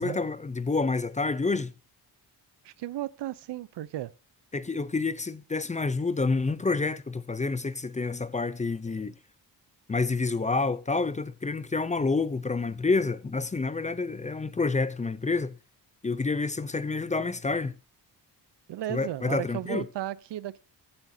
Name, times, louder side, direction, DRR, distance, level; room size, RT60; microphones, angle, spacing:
voice 1, 0.0-1.7 4.5-9.1 9.9-15.6 16.0-17.7 18.9-19.9, left 3 dB, 20° left, 0.5 m, -28 dB
voice 2, 2.6-4.1 18.7-20.6, right 13 dB, 90° right, 0.7 m, -34 dB
14.5 x 8.7 x 2.7 m
wide cardioid pair, 150°, 41 cm